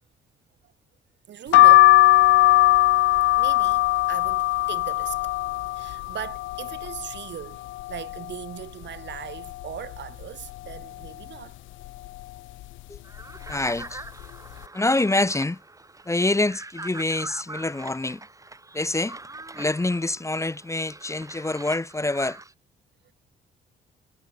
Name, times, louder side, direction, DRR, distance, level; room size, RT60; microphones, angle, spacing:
voice 1, 1.3-1.9 3.4-11.6, right 10 dB, 65° right, 1.9 m, -39 dB
sound 1, 1.5-7.2 7.7-8.4 8.8-8.9 9.1-10.2 10.7-11.1 11.8-12.2 12.9-13.2 13.5-13.7, left 17 dB, 80° left, 0.4 m, -19 dB
sound 2, 13.0-22.5, right 2 dB, 15° right, 2.4 m, -43 dB
voice 2, 13.5-14.0 14.7-15.6 16.1-18.2 18.7-19.2 19.5-22.4, left 2 dB, 15° left, 1.3 m, -26 dB
cardioid pair, 90°, 20 cm